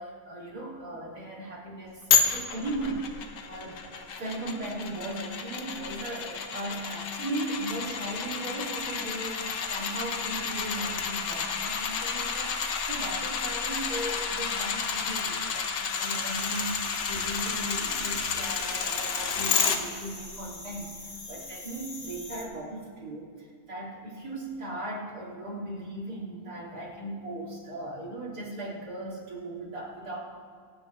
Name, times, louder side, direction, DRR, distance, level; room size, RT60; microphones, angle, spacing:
voice 1, 0.0-3.0 3.4-3.8 4.2-30.2, right 1 dB, 65° right, -6 dB, 3.7 m, -37 dB
sound 1, 2.1-19.8 20.2-20.3, left 6 dB, 85° left, 1.6 m, -30 dB
sound 2, 15.9-22.4, left 2 dB, 30° left, 1.6 m, -43 dB
24.0 x 8.9 x 3.4 m, 2.1 s
omnidirectional pair, 1.9 m